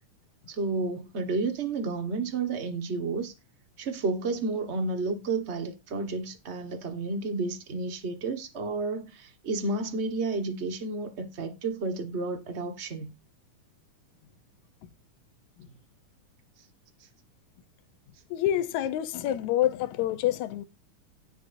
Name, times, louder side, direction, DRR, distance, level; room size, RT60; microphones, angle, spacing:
voice 1, 0.5-3.3 3.8-13.1, right 3 dB, 45° right, 0.8 m, -31 dB
voice 2, 18.3-20.6, left 12 dB, 70° left, 2.0 m, -27 dB
17.5 x 6.1 x 2.6 m
omnidirectional pair, 3.8 m